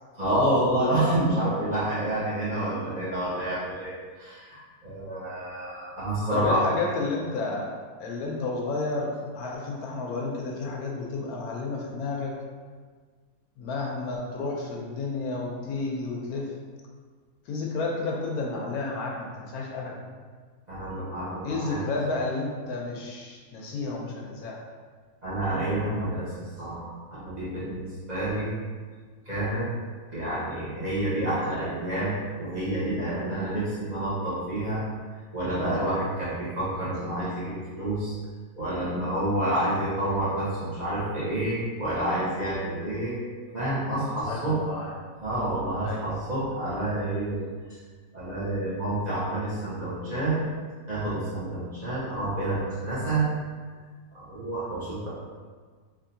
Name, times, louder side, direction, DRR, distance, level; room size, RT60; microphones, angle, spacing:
voice 1, 0.2-6.6 20.7-21.8 25.2-26.3 26.6-28.5 29.3-29.7 30.1-34.8 35.3-38.1 38.6-43.2 43.5-44.6 45.2-47.5 48.1-50.4 50.9-53.2 54.1-55.1, right 1 dB, 30° right, -11 dB, 1.0 m, -28 dB
voice 2, 6.3-7.7 8.0-12.3 13.6-16.5 17.5-20.0 21.4-24.6 44.3-44.9 45.8-46.2, left 3 dB, 80° left, -1 dB, 1.1 m, -31 dB
3.6 x 2.7 x 2.7 m, 1.5 s
omnidirectional pair, 1.6 m